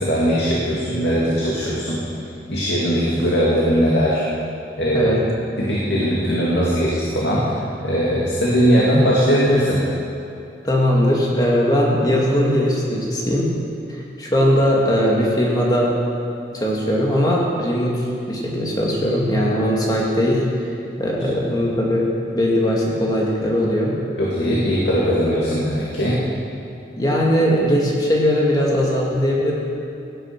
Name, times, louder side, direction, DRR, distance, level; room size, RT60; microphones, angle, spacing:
voice 1, 0.0-2.0 2.5-4.2 4.8-5.1 5.6-7.5 7.8-9.8 24.2-26.2, equal, 80° left, -6 dB, 2.4 m, -19 dB
voice 2, 10.6-13.5 13.9-15.9 16.5-20.4 21.0-22.1 22.3-24.0 27.0-29.5, equal, 20° left, -3 dB, 2.0 m, -19 dB
17.0 x 9.9 x 6.0 m, 2.7 s
head